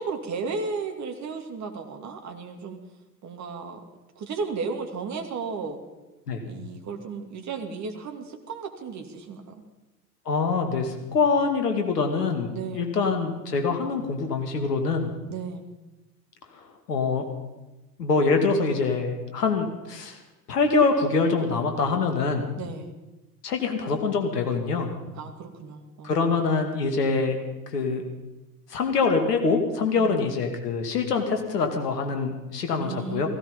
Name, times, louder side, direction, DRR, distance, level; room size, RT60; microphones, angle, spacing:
voice 1, 0.0-2.8 3.2-3.8 4.2-5.8 6.4-9.6 12.5-12.9 15.3-15.7 22.6-22.9 25.1-26.3 30.0-30.3 32.8-33.3, right 5 dB, 35° right, 4 dB, 2.5 m, -34 dB
voice 2, 10.3-15.1 16.9-17.2 18.0-20.2 20.5-22.4 23.4-24.9 26.0-27.4 27.7-28.0 28.7-33.3, left 4 dB, 75° left, 5 dB, 2.5 m, -24 dB
16.0 x 16.0 x 5.5 m, 1.1 s
figure-of-eight pair, 80°, 48 cm